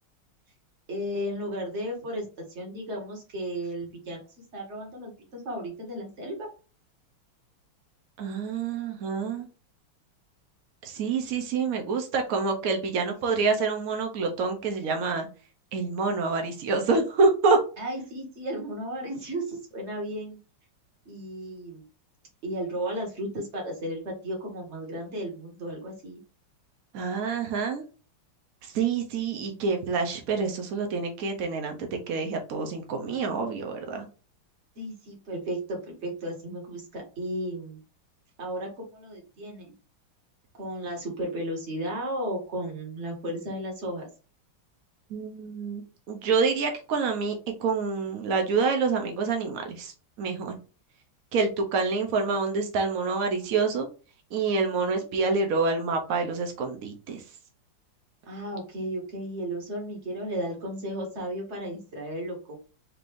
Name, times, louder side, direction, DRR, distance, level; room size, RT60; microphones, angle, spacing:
voice 1, 0.9-4.2 4.5-6.5 13.0-13.6 17.8-20.4 21.0-21.8 22.4-26.2 34.8-37.8 38.4-39.7 40.5-44.1 58.3-62.6, equal, 35° right, 0 dB, 1.4 m, -34 dB
voice 2, 8.2-9.5 10.8-15.3 15.7-17.6 26.9-27.8 28.6-34.1 45.1-49.9 50.2-50.6 51.3-53.9 54.3-57.2, right 4 dB, 90° right, 4 dB, 0.7 m, -27 dB
4.6 x 2.5 x 3.4 m, 0.35 s
omnidirectional pair, 2.3 m